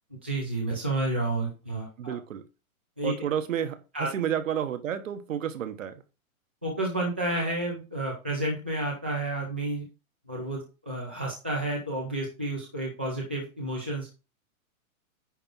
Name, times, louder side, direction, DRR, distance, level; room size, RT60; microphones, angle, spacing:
voice 1, 0.2-2.2 3.0-3.1 3.9-4.1 6.6-9.8 10.3-14.1, right 2 dB, 10° right, 0.4 m, -30 dB
voice 2, 2.0-2.5 3.0-6.0, right 9 dB, 60° right, 1.4 m, -31 dB
9.9 x 3.6 x 6.0 m
hypercardioid pair, 160°, 43 cm